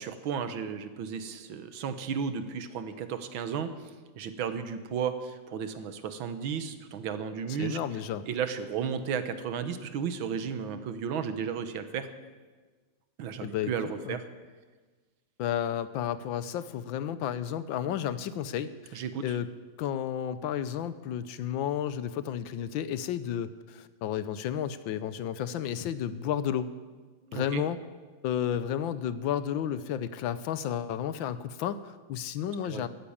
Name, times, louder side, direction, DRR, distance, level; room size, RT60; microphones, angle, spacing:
voice 1, 0.0-7.8 8.3-12.1 13.2-14.2 18.9-19.4 27.3-27.6 32.6-32.9, right 7 dB, 80° right, 10 dB, 1.8 m, -34 dB
voice 2, 7.6-8.2 13.4-14.2 15.4-19.5 19.8-26.7 27.3-27.8 28.2-32.9, left 9 dB, 75° left, 14 dB, 1.4 m, -32 dB
14.0 x 10.0 x 8.7 m, 1.4 s
omnidirectional pair, 2.2 m